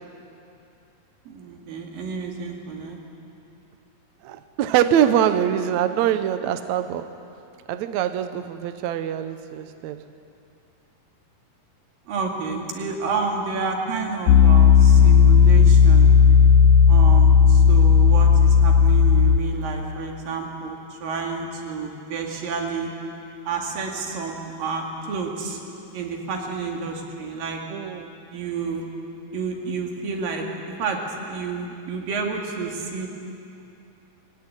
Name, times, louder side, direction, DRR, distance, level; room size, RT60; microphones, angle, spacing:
voice 1, 1.3-3.0 12.1-16.1 16.9-22.9 23.5-25.6 25.9-27.6 28.3-28.9 29.3-30.5 30.8-31.0 31.3-33.1, right 4 dB, 90° right, 1 dB, 4.1 m, -30 dB
voice 2, 4.2-7.2 7.7-10.0 27.7-28.1, right 10 dB, 70° right, 10 dB, 1.9 m, -23 dB
Piano, 14.3-19.4, left 7 dB, 75° left, 1.9 m, -13 dB
22.0 x 17.0 x 9.9 m, 2.6 s
omnidirectional pair, 3.9 m